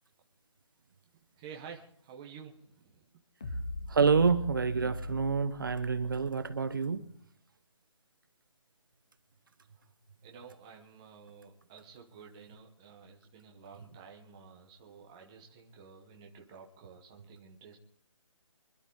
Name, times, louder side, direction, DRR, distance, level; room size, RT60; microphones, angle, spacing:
voice 1, 1.4-3.1 9.8-9.9 10.2-17.8, right 6 dB, 10° right, 1 dB, 0.9 m, -51 dB
sound 1, 3.4-6.8, left 2 dB, 10° left, 0.5 m, -41 dB
voice 2, 3.9-7.1, right 5 dB, 40° right, 11 dB, 1.0 m, -27 dB
25.0 x 12.0 x 3.8 m, 0.65 s
hypercardioid pair, 175°, 17 cm